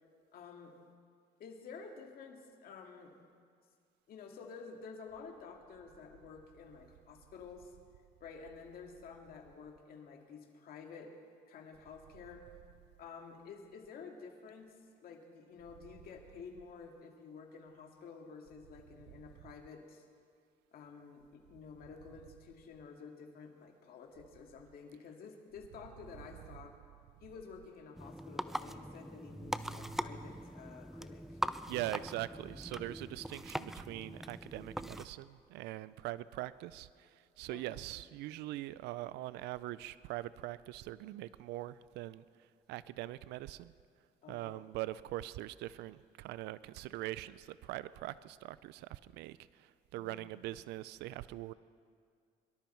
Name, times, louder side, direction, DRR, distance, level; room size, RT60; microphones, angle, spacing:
voice 1, 0.3-0.7 1.4-3.1 4.1-7.7 8.2-11.1 11.5-12.4 13.0-14.7 15.0-20.0 20.7-26.7 27.2-31.4 31.9-32.0 37.5-37.8 44.2-44.6 49.9-50.3, left 5 dB, 60° left, 2 dB, 2.1 m, -51 dB
sound 1, 28.0-35.1, equal, ahead, 0.4 m, -41 dB
voice 2, 31.7-42.2 42.7-43.7 44.3-51.5, right 16 dB, 85° right, 17 dB, 0.4 m, -42 dB
23.5 x 12.5 x 4.5 m, 2.2 s
cardioid pair, 110°, 17 cm